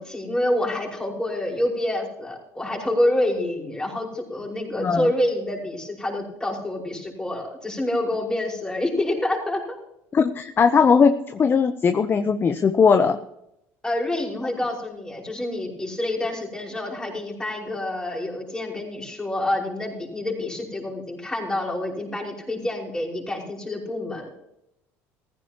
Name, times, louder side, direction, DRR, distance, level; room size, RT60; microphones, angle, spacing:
voice 1, 0.0-9.8 13.8-24.3, left 1 dB, 10° left, -1 dB, 5.5 m, -27 dB
voice 2, 10.1-13.2, left 5 dB, 30° left, 9 dB, 0.9 m, -19 dB
15.5 x 15.0 x 3.0 m, 0.80 s
supercardioid pair, 100°, 7 cm